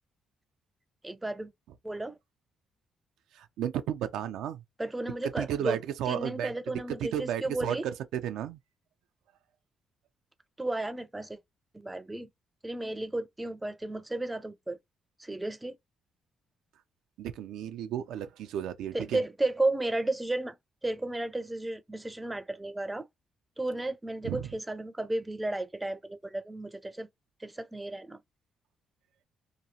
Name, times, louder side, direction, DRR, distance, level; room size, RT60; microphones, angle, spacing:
voice 1, 1.0-1.5 1.8-2.2 4.8-5.8 6.1-7.9 10.6-11.4 11.7-12.3 12.6-14.8 15.2-15.8 18.9-20.6 20.8-23.1 23.6-27.1 27.4-28.2, right 2 dB, 10° right, 0.5 m, -33 dB
voice 2, 3.4-4.6 5.2-6.5 6.9-8.6 17.2-19.2 24.2-24.5, right 10 dB, 85° right, 0.4 m, -33 dB
2.9 x 2.3 x 2.7 m
cardioid pair, 90°, 0 cm